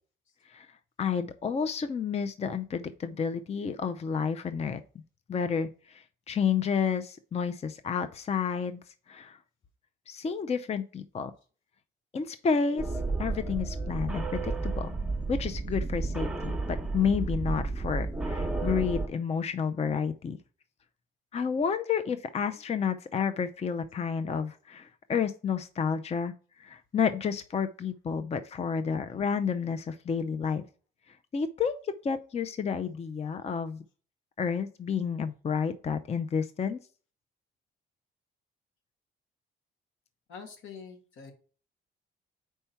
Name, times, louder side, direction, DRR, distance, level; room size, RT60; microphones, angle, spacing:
voice 1, 1.0-4.8 5.3-8.8 9.1-9.4 10.1-11.3 12.1-12.8 13.2-14.9 15.3-16.6 16.9-20.4 21.3-26.3 26.6-30.6 31.1-33.8 34.4-36.8, left 6 dB, 30° left, 10 dB, 0.5 m, -30 dB
sound 1, 12.8-19.1, right 3 dB, 5° right, 1.0 m, -32 dB
voice 2, 40.3-41.3, left 6 dB, 80° left, 3 dB, 1.7 m, -45 dB
4.5 x 4.3 x 5.7 m, 0.39 s
cardioid pair, 90°, 20 cm